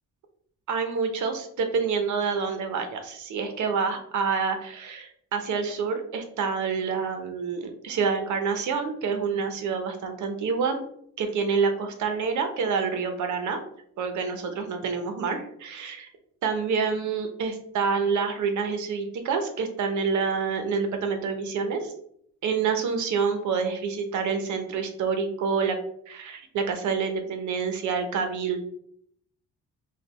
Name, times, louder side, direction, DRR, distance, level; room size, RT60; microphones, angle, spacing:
voice 1, 0.7-10.8 11.2-13.6 14.0-16.1 16.4-21.9 22.4-25.8 26.1-28.6, right 5 dB, 75° right, 6 dB, 0.9 m, -27 dB
5.2 x 2.4 x 3.0 m, 0.68 s
cardioid pair, 90°, 30 cm